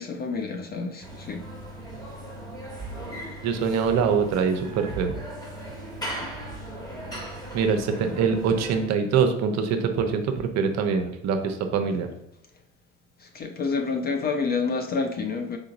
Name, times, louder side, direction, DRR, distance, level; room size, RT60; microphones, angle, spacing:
voice 1, 0.0-1.5 6.2-6.3 13.2-15.6, left 4 dB, 25° left, 4 dB, 0.5 m, -29 dB
sound 1, 1.0-8.9, right 1 dB, 10° left, 1.2 m, -37 dB
voice 2, 3.4-5.1 7.5-12.1, right 6 dB, 45° right, 6 dB, 0.7 m, -24 dB
5.0 x 3.7 x 2.5 m, 0.79 s
hypercardioid pair, 70°, 39 cm